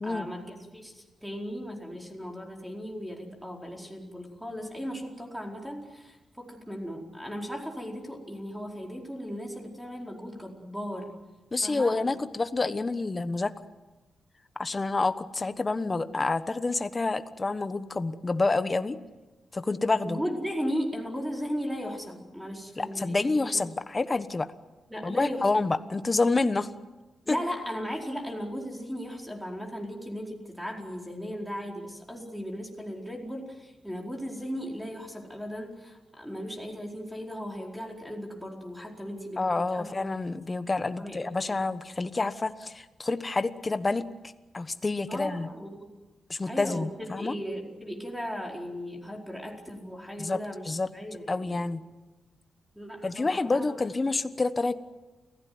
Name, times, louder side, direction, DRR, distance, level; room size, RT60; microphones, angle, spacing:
voice 1, 0.0-11.1 11.6-12.0 20.0-23.6 24.9-25.6 27.3-39.4 39.7-40.0 41.0-41.6 45.1-46.0 46.5-46.9 47.2-51.6 52.7-53.8, equal, ahead, 1 dB, 4.6 m, -37 dB
voice 2, 11.5-13.5 14.6-19.0 19.5-20.2 22.8-24.5 25.0-26.7 27.3-27.4 39.4-44.1 44.5-45.5 46.3-47.4 50.2-50.4 50.7-50.9 51.3-51.8 53.0-54.7, left 3 dB, 25° left, 11 dB, 1.2 m, -28 dB
29.0 x 16.0 x 9.5 m, 1.1 s
wide cardioid pair, 120°, 0 cm